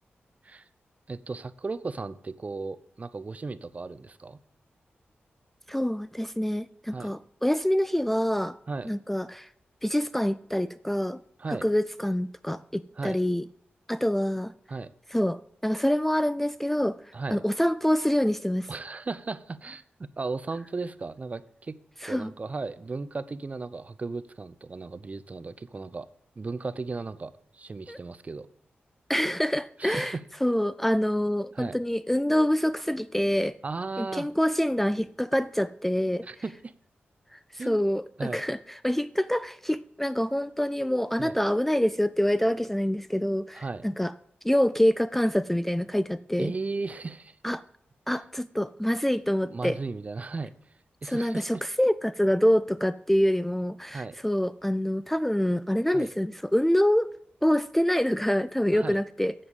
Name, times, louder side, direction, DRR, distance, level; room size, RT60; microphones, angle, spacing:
voice 1, 1.1-4.4 6.9-7.1 8.7-8.9 11.4-11.6 13.0-13.2 14.7-14.9 17.1-17.4 18.7-21.8 22.1-26.1 26.4-28.5 29.8-30.2 31.5-31.8 33.6-34.3 36.2-36.7 37.6-37.8 38.2-38.4 41.2-41.3 43.5-43.8 46.4-47.4 49.4-50.5 51.0-51.6 53.9-54.2 55.9-56.1 58.7-59.0, right 3 dB, 35° right, 0.6 m, -35 dB
voice 2, 5.7-8.6 8.8-9.5 9.8-11.2 11.5-13.4 13.9-14.5 15.1-17.0 17.3-18.7 22.0-22.3 27.9-28.0 29.1-33.6 34.0-36.3 37.3-44.1 44.4-46.5 47.4-47.6 48.1-49.8 51.0-57.1 57.4-59.3, equal, 5° left, 0.3 m, -26 dB
7.6 x 7.2 x 8.1 m
cardioid pair, 80°, 4 cm